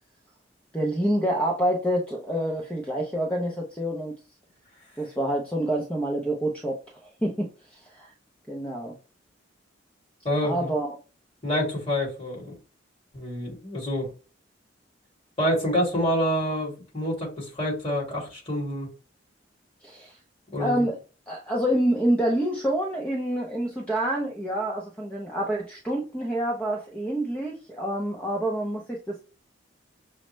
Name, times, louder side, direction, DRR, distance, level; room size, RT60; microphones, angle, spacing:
voice 1, 0.7-4.1 5.0-8.1 8.5-8.9 10.4-11.0 19.8-20.2 20.6-21.0 21.3-29.2, right 1 dB, 5° left, 0.6 m, -27 dB
voice 2, 10.2-10.7 11.4-12.5 13.1-14.1 15.4-18.9 20.5-20.9, equal, 30° left, 2.1 m, -27 dB
6.2 x 2.1 x 3.1 m
head